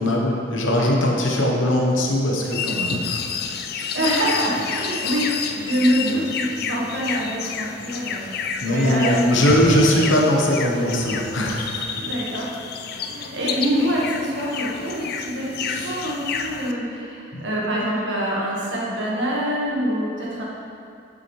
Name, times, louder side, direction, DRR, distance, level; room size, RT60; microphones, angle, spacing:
voice 1, 0.0-3.2 6.1-6.2 8.2-8.3 8.6-11.8 15.7-16.0 17.3-17.4, left 1 dB, 80° left, -1 dB, 1.0 m, -20 dB
sound 1, 2.4-16.7, left 6 dB, 50° left, 0.4 m, -30 dB
voice 2, 3.9-8.3 8.6-10.0 12.0-12.5 13.0-20.4, equal, 70° right, -5 dB, 1.5 m, -25 dB
7.6 x 7.1 x 3.2 m, 2.5 s
head